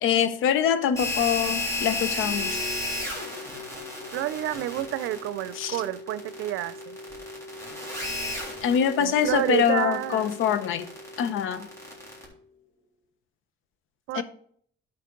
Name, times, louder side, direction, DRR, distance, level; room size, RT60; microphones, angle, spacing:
voice 1, 0.0-2.6 5.6-5.8 8.6-10.9 11.2-11.7 14.1-14.2, left 8 dB, 85° left, 12 dB, 0.8 m, -24 dB
sound 1, 1.0-12.3, left 2 dB, 15° left, 3.5 m, -33 dB
sound 2, 2.1-12.8, left 3 dB, 60° left, 2.5 m, -44 dB
voice 2, 4.1-7.0 9.0-10.4 14.1-14.2, right 14 dB, 90° right, 17 dB, 0.5 m, -29 dB
11.0 x 5.8 x 3.8 m, 0.62 s
cardioid pair, 90°, 20 cm